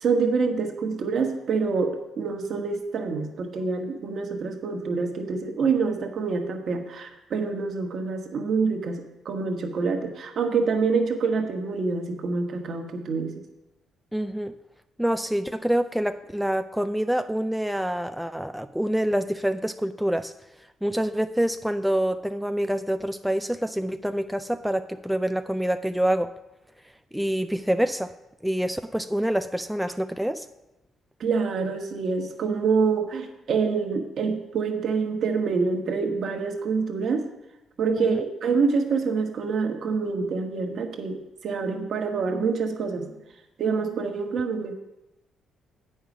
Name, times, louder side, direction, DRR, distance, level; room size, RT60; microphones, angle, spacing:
voice 1, 0.0-13.3 31.2-37.2 37.8-43.1 43.6-44.8, right 4 dB, 60° right, 4 dB, 1.2 m, -26 dB
voice 2, 14.1-14.5 15.0-20.3 20.8-26.3 27.1-28.1 28.4-30.5 38.0-38.2, right 1 dB, 5° right, 8 dB, 0.3 m, -26 dB
8.5 x 5.6 x 6.0 m, 0.95 s
cardioid pair, 90°, 0 cm